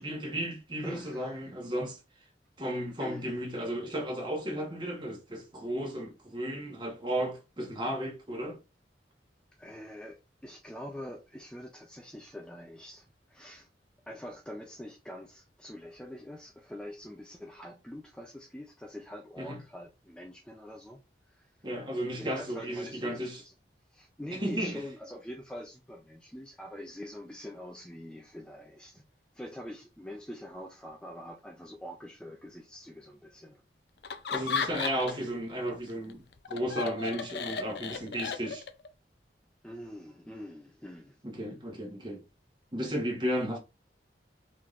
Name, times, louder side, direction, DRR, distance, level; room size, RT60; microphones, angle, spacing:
voice 1, 0.0-2.0 2.6-8.6 19.4-19.6 21.6-23.4 24.3-24.8 34.3-38.7 41.2-42.2 42.7-43.6, equal, 25° right, 1.2 m, -34 dB
voice 2, 0.8-1.4 3.0-3.3 9.6-13.7 14.1-21.0 21.3-21.6 22.2-23.5 23.9-29.0 29.3-33.6 39.6-41.2, equal, 5° left, 0.5 m, -45 dB
Laughter, 34.0-35.3 35.7-38.9, left 5 dB, 65° left, 0.5 m, -35 dB
4.7 x 3.6 x 2.5 m
head